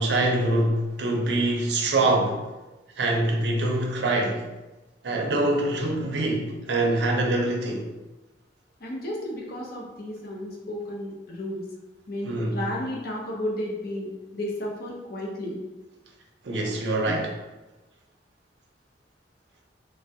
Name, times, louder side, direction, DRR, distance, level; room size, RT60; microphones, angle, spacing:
voice 1, 0.0-2.4 3.0-4.5 5.0-7.9 12.2-12.7 16.4-17.3, right 2 dB, 70° right, 1 dB, 0.5 m, -24 dB
voice 2, 8.8-11.6 12.1-15.6 17.1-17.2, left 1 dB, 55° left, -2 dB, 0.6 m, -33 dB
3.2 x 2.2 x 2.7 m, 1.1 s
head